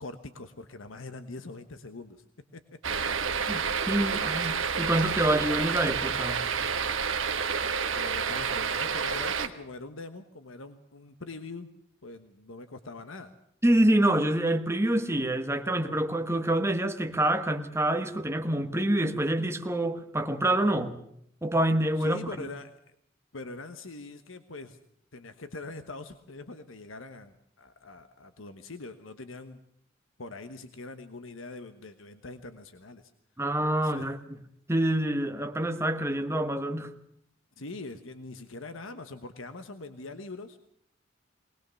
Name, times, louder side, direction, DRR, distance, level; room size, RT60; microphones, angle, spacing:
voice 1, 0.0-2.2 2.5-3.0 7.9-11.7 12.0-13.3 22.0-22.8 23.3-24.8 25.1-29.6 30.2-33.1 33.8-34.1 37.6-40.6, left 3 dB, 85° left, 1.3 m, -43 dB
sound 1, 2.8-9.5, right 6 dB, 80° right, 1.4 m, -29 dB
voice 2, 3.5-6.4 13.6-21.0 21.4-22.2 33.4-34.4 34.7-36.9, right 1 dB, 15° right, 1.4 m, -26 dB
20.5 x 20.0 x 7.0 m
head